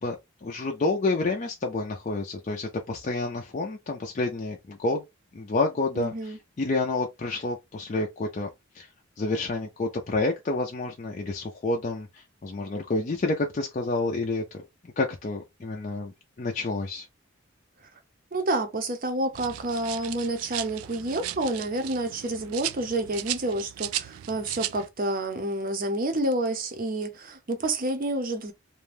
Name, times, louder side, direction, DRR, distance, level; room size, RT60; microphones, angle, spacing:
voice 1, 0.0-5.0 5.3-8.5 8.7-8.9 9.2-14.4 15.0-16.1 16.4-17.1, left 2 dB, 35° left, 0.4 m, -29 dB
voice 2, 6.0-6.4 18.3-28.5, right 1 dB, 40° right, 0.6 m, -29 dB
sound 1, 19.3-24.9, right 13 dB, 90° right, 0.3 m, -36 dB
2.5 x 2.1 x 3.2 m
head